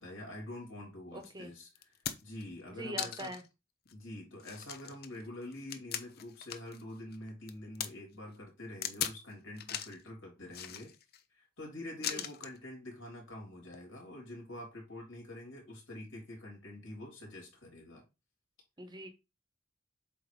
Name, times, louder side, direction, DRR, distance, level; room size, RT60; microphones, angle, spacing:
voice 1, 0.0-3.3 3.9-10.9 11.3-18.0, left 1 dB, 75° left, 3.3 m, -46 dB
voice 2, 1.1-1.5 2.8-3.4 12.1-12.3 18.8-19.1, right 1 dB, 20° right, 1.1 m, -42 dB
sound 1, 1.2-1.3 1.8-2.4 3.0-3.5 3.9-4.0 4.4-6.8 7.1-7.9 8.8-9.2 9.6-10.0 10.5-11.2 12.0-12.6 13.6-13.8, left 9 dB, 55° left, 0.7 m, -39 dB
7.8 x 2.9 x 5.0 m
head